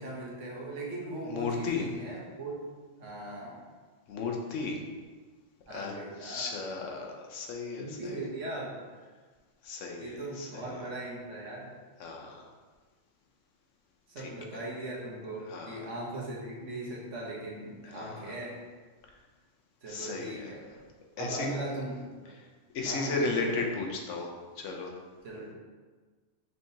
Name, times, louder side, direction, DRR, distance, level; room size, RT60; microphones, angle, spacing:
voice 1, 0.0-2.6 3.0-3.7 5.7-6.5 7.8-8.8 10.0-11.7 14.1-18.6 19.8-20.6 21.2-22.0 22.2-22.3 22.8-23.7 25.2-25.5, right 2 dB, 80° right, -4 dB, 1.4 m, -39 dB
voice 2, 1.2-1.9 4.1-4.8 5.7-5.9 6.2-8.3 9.6-10.8 12.0-12.5 14.2-14.6 15.5-15.8 17.8-18.4 19.9-20.5 21.2-21.5 22.7-24.9, left 4 dB, 90° left, 1 dB, 1.1 m, -35 dB
5.6 x 3.4 x 2.7 m, 1.4 s
omnidirectional pair, 1.2 m